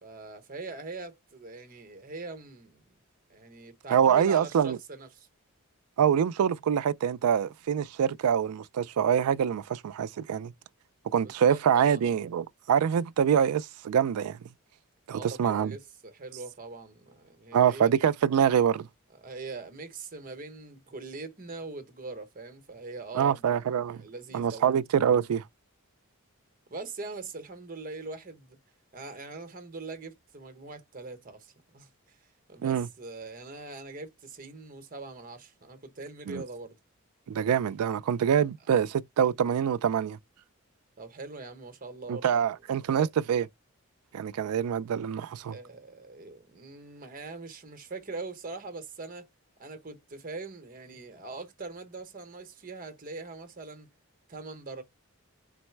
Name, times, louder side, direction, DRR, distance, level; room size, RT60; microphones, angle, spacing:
voice 1, 0.0-2.9 3.3-5.3 11.2-12.0 15.1-17.9 19.2-24.8 26.7-28.6 28.9-32.2 32.5-36.8 41.0-43.1 45.4-49.3 49.6-53.9 54.3-54.8, right 3 dB, 40° right, 0.9 m, -42 dB
voice 2, 3.9-4.8 6.0-10.5 11.1-14.4 15.1-15.7 17.5-18.9 23.2-24.0 24.3-25.4 32.6-32.9 36.3-36.4 37.3-40.2 42.1-43.5 44.1-45.5, right 8 dB, 90° right, 0.3 m, -25 dB
3.9 x 2.1 x 4.4 m
head